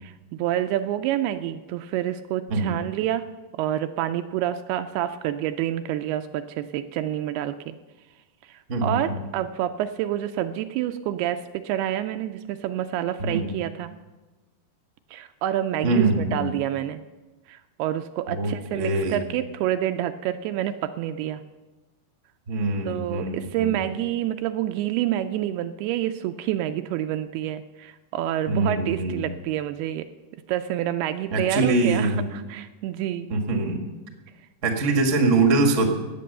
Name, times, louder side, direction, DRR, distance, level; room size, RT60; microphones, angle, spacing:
voice 1, 0.0-3.3 3.5-7.8 8.5-13.9 15.1-17.0 17.5-21.4 22.9-30.1 30.5-33.3, right 12 dB, 80° right, 9 dB, 2.4 m, -28 dB
voice 2, 2.5-2.8 8.7-9.2 13.2-13.5 15.8-16.5 18.3-19.2 22.5-23.8 28.5-29.2 31.3-32.3 33.3-33.8 34.6-35.9, right 3 dB, 45° right, 3 dB, 0.9 m, -23 dB
15.5 x 9.2 x 6.7 m, 1.2 s
omnidirectional pair, 4.8 m